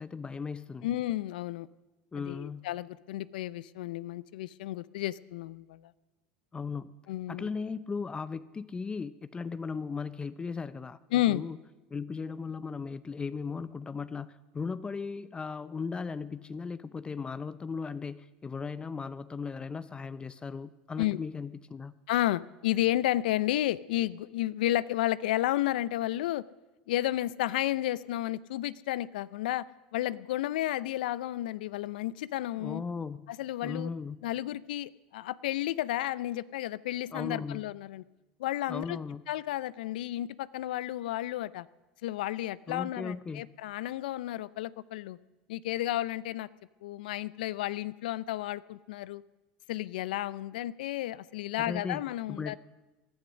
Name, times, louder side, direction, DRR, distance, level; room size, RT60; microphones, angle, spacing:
voice 1, 0.0-0.9 2.1-2.7 6.5-6.9 7.3-11.6 11.9-22.0 32.6-33.3 33.6-34.2 37.1-37.6 38.7-39.2 42.7-43.5 51.6-52.0 52.3-52.6, left 5 dB, 20° left, 16 dB, 0.5 m, -37 dB
voice 2, 0.8-1.7 2.1-5.9 7.1-7.5 11.1-11.4 21.0-21.2 22.1-26.4 26.9-29.6 29.9-32.8 33.3-33.9 34.2-38.0 38.4-39.0 39.3-41.7 42.0-45.2 45.5-46.5 46.8-49.2 49.7-52.6, left 14 dB, 80° left, 20 dB, 0.5 m, -32 dB
19.5 x 11.5 x 6.3 m, 1.1 s
hypercardioid pair, 95°, 5 cm